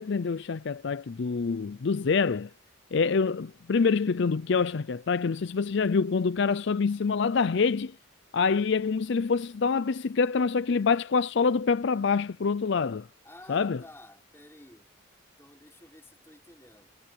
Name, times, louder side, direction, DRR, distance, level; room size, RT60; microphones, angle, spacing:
voice 1, 0.0-2.5 2.9-8.0 8.3-13.1 13.5-13.8, left 5 dB, 60° left, 0.5 m, -26 dB
voice 2, 13.2-14.9 15.4-17.0, left 1 dB, 10° left, 5.8 m, -51 dB
head